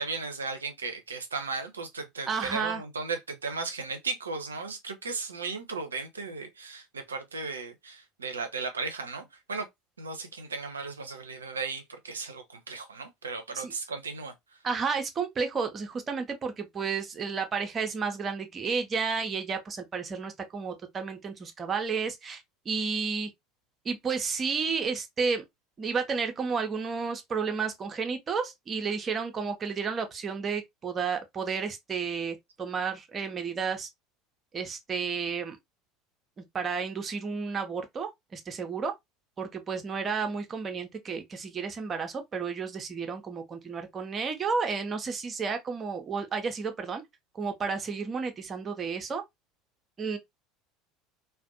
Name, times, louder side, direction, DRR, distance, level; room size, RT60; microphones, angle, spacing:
voice 1, 0.0-9.7 10.0-14.3, right 4 dB, 80° right, 0.5 m, -36 dB
voice 2, 2.3-2.8 13.5-13.7 14.6-22.4 22.7-23.3 23.8-25.4 25.8-33.9 34.5-35.6 36.4-38.9 39.4-47.0 47.3-49.2 50.0-50.2, right 5 dB, 30° right, 0.6 m, -32 dB
2.5 x 2.2 x 2.4 m
figure-of-eight pair, 70°, 0 cm